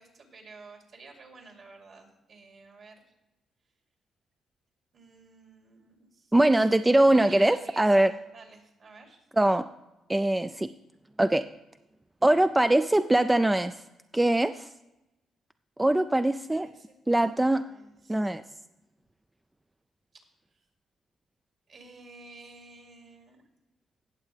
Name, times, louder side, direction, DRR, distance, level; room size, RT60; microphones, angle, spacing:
voice 1, 0.0-3.1 4.9-6.3 7.0-9.2 16.1-17.3 17.6-18.3 20.1-20.2 21.7-23.4, right 3 dB, 55° right, 2 dB, 2.7 m, -51 dB
voice 2, 6.3-8.1 9.4-9.6 10.1-10.7 11.2-11.4 12.2-13.7 14.1-14.7 15.8-16.7 17.1-17.6 18.1-18.4, right 1 dB, 10° right, 10 dB, 0.3 m, -22 dB
17.5 x 7.2 x 3.3 m, 0.96 s
cardioid pair, 90°, 0 cm